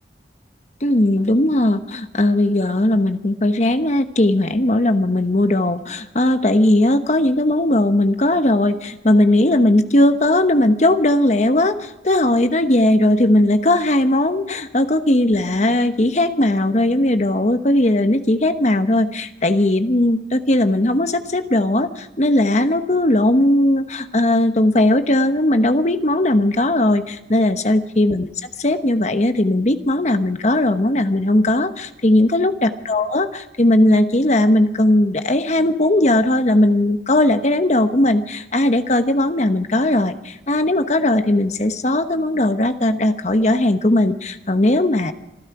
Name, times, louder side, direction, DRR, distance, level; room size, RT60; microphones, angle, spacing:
voice 1, 0.8-28.3 28.6-45.1, left 1 dB, 40° left, 9 dB, 1.0 m, -18 dB
26.0 x 11.5 x 4.8 m, 0.94 s
head